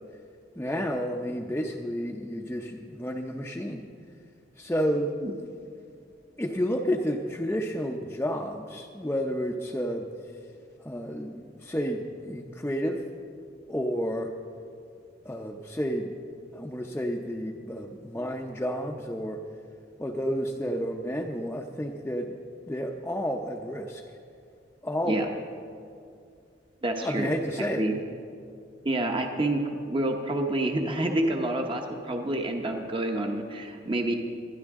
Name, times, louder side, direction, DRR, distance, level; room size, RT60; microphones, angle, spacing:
voice 1, 0.6-3.9 4.6-5.1 6.4-10.1 10.8-13.0 13.7-14.3 15.2-16.2 16.5-19.4 20.0-22.4 22.7-24.0 24.8-25.4 27.0-27.9, equal, 10° left, 0 dB, 0.6 m, -31 dB
voice 2, 26.8-27.3 27.8-28.0 28.8-29.6 29.9-34.1, right 1 dB, 30° right, 3 dB, 0.9 m, -28 dB
20.5 x 12.5 x 3.6 m, 2.4 s
head